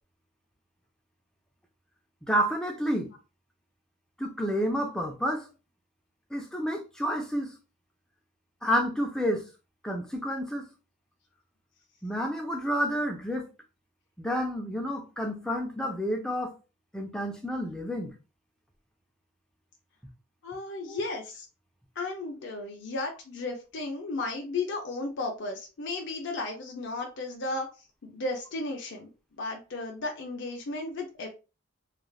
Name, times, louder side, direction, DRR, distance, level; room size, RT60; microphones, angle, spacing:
voice 1, 2.3-3.1 4.2-5.5 6.3-7.6 8.6-9.5 9.8-10.7 12.0-13.5 14.2-16.6 16.9-18.1 20.8-21.0, equal, 5° left, 0.4 m, -29 dB
voice 2, 20.4-21.5 22.0-27.7 28.0-29.1 29.4-31.3, left 2 dB, 55° left, 0.5 m, -34 dB
3.2 x 2.4 x 2.3 m
head